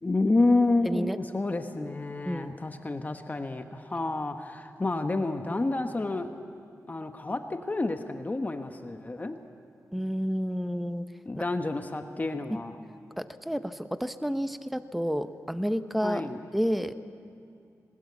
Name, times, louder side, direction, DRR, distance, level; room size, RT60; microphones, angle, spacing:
voice 1, 0.0-6.3 6.9-9.4 11.2-12.8 16.0-16.4, left 2 dB, 30° left, 6 dB, 1.1 m, -29 dB
voice 2, 0.8-1.2 2.2-2.5 9.9-11.1 13.2-17.0, equal, ahead, 10 dB, 0.8 m, -30 dB
20.5 x 20.0 x 8.5 m, 2.5 s
wide cardioid pair, 95°, 6 cm